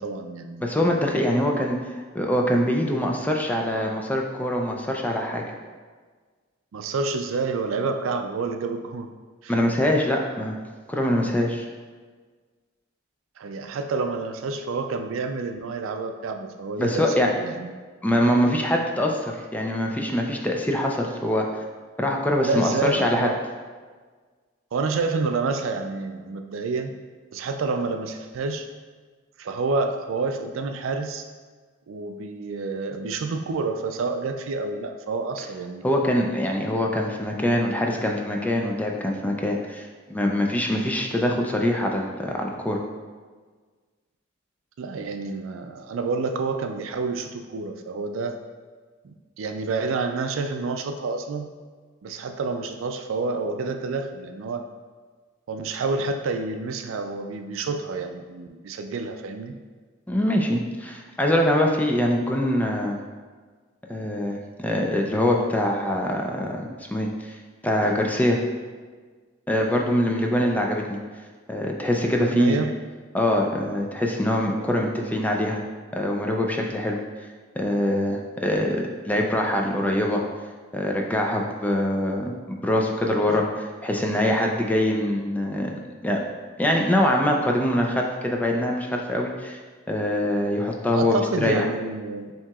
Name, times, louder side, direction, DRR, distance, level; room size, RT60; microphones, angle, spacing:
voice 1, 0.0-0.7 6.7-9.1 9.4-9.5 13.4-17.7 22.4-23.4 24.7-26.9 27.3-28.7 29.4-31.2 31.9-35.8 44.8-48.4 49.0-51.5 52.0-54.7 55.5-59.5 72.2-72.8 83.3-83.4 90.9-92.3, right 4 dB, 85° right, 6 dB, 0.4 m, -28 dB
voice 2, 0.6-1.8 2.1-5.5 9.5-10.6 10.9-11.7 16.8-17.3 18.0-21.5 22.0-23.3 35.8-42.8 60.1-63.0 63.9-67.4 67.6-68.4 69.5-71.0 71.5-72.6 73.1-75.6 75.9-77.0 77.5-80.2 80.7-85.8 86.0-86.2 86.6-89.6 89.9-91.7, left 1 dB, 10° left, 0 dB, 0.4 m, -24 dB
7.2 x 2.9 x 2.3 m, 1.5 s
head